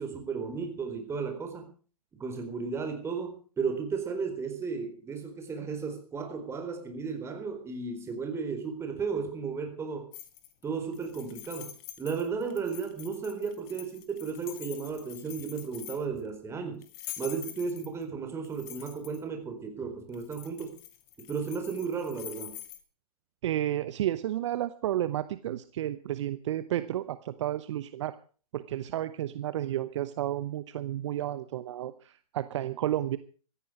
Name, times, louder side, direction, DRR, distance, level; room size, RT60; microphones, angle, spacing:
voice 1, 0.0-1.7 2.2-10.1 10.6-11.7 12.0-16.8 17.2-20.8 21.2-22.6, right 5 dB, 15° right, 5 dB, 4.3 m, -34 dB
sound 1, 10.1-10.6 10.9-16.2 16.8-18.0 18.4-19.2 20.1-22.8, left 13 dB, 35° left, 2.4 m, -45 dB
voice 2, 23.4-28.2 28.5-33.2, right 12 dB, 50° right, 14 dB, 0.9 m, -32 dB
16.5 x 14.0 x 5.0 m, 0.40 s
figure-of-eight pair, 120°, 20 cm